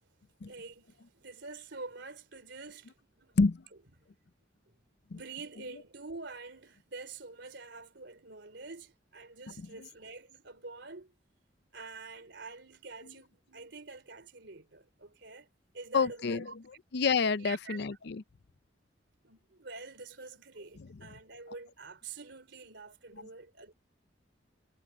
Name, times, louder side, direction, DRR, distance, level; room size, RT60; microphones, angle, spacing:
voice 1, 0.4-3.4 4.0-4.1 4.7-4.8 5.1-11.1 11.7-15.5 15.7-16.6 17.4-17.8 19.2-23.7, right 3 dB, 70° right, 3.8 m, -47 dB
voice 2, 15.9-16.4 16.9-18.2, left 4 dB, 65° left, 0.6 m, -28 dB
head